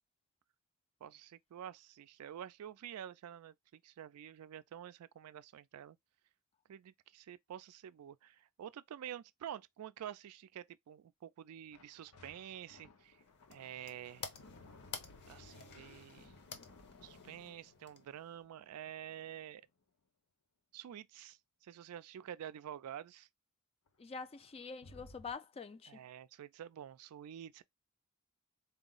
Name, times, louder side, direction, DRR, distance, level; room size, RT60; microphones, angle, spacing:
voice 1, 1.0-6.0 6.7-13.2 13.5-14.2 15.3-16.4 17.0-19.6 20.7-23.3 25.9-27.6, right 10 dB, 90° right, 0.3 m, -49 dB
sound 1, 11.7-19.6 23.9-24.0 24.1-25.3, left 2 dB, 85° left, 0.8 m, -60 dB
sound 2, 13.0-18.4, left 5 dB, 50° left, 0.7 m, -52 dB
voice 2, 24.0-26.0, left 5 dB, 25° left, 0.3 m, -46 dB
4.2 x 2.0 x 3.7 m
head